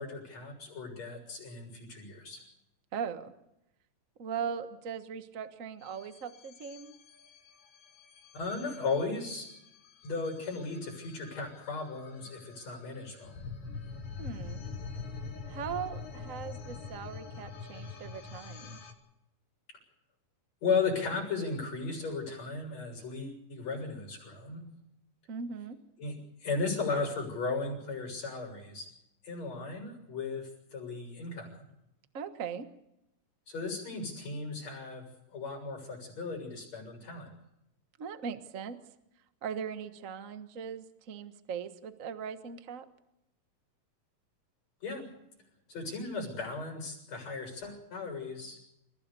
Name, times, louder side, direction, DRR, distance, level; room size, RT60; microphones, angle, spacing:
voice 1, 0.0-2.4 8.3-9.5 10.0-13.4 20.6-24.7 26.0-28.9 29.2-31.7 33.5-37.3 44.8-45.1 45.7-48.6, left 4 dB, 55° left, -1 dB, 7.7 m, -36 dB
voice 2, 2.9-3.3 4.2-7.0 14.2-14.6 15.5-18.8 25.3-25.8 32.1-32.7 38.0-38.8 39.4-42.9, right 7 dB, 50° right, 9 dB, 0.9 m, -39 dB
sound 1, 5.8-18.9, left 4 dB, 80° left, 4.9 m, -45 dB
28.5 x 16.0 x 7.0 m, 0.85 s
omnidirectional pair, 3.8 m